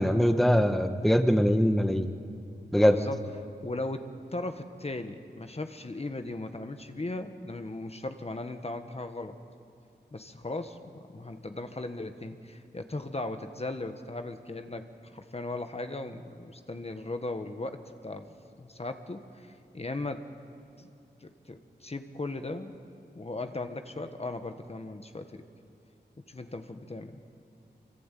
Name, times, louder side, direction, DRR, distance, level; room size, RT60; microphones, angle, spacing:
voice 1, 0.0-2.1 2.7-3.0, equal, ahead, 7 dB, 1.3 m, -22 dB
voice 2, 2.8-3.2 3.6-9.4 10.1-20.3 20.8-20.9 21.2-22.8 23.1-25.4 26.3-27.2, left 2 dB, 35° left, 7 dB, 1.3 m, -37 dB
25.5 x 24.5 x 9.1 m, 2.5 s
wide cardioid pair, 95°, 18 cm